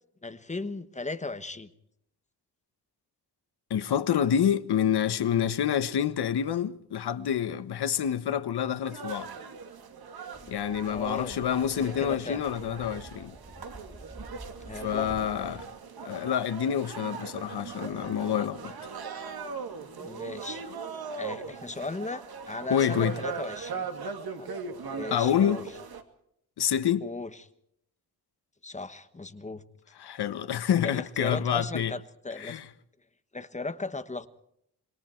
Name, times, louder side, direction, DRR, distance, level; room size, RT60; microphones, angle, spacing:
voice 1, 0.2-1.7 10.8-11.4 11.7-12.4 14.6-15.2 20.0-20.7 21.2-24.5 24.9-25.6 27.0-27.3 28.6-29.6 30.8-32.6 33.3-34.3, left 3 dB, 20° left, 1.2 m, -37 dB
voice 2, 3.7-9.3 10.5-13.3 14.8-15.7 16.0-18.7 22.7-23.1 25.1-25.6 26.6-27.0 30.0-31.9 32.4-32.6, left 9 dB, 80° left, 1.3 m, -27 dB
sound 1, 8.8-26.0, right 5 dB, 70° right, 2.4 m, -40 dB
sound 2, 10.3-15.7, right 1 dB, 5° right, 2.5 m, -48 dB
26.0 x 22.5 x 4.6 m
wide cardioid pair, 155°, 39 cm